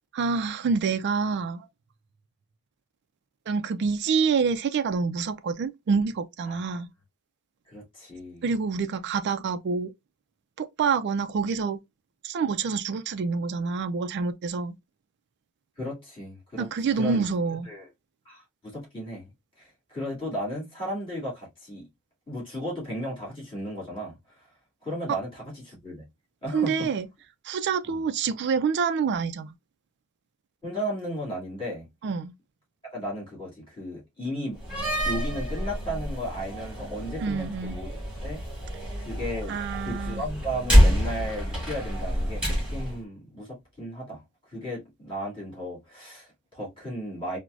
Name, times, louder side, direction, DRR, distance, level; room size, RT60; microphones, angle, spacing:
voice 1, 0.1-1.7 3.5-6.9 8.4-9.9 10.6-11.8 12.2-14.8 16.6-17.7 25.1-25.2 26.5-27.1 27.4-29.5 32.0-32.3 37.2-37.8 39.5-40.2, right 5 dB, 55° right, 0.3 m, -27 dB
voice 2, 6.5-6.8 7.7-8.4 15.8-17.2 17.6-17.9 18.3-19.3 19.6-21.9 22.3-24.2 24.8-26.0 26.4-26.9 27.9-28.0 30.6-31.9 32.9-34.6 35.1-38.4 39.0-42.4 42.7-44.2 44.5-47.4, equal, 25° left, 2.4 m, -35 dB
Slam, 34.6-43.0, equal, 5° right, 2.4 m, -26 dB
4.6 x 2.1 x 2.5 m
head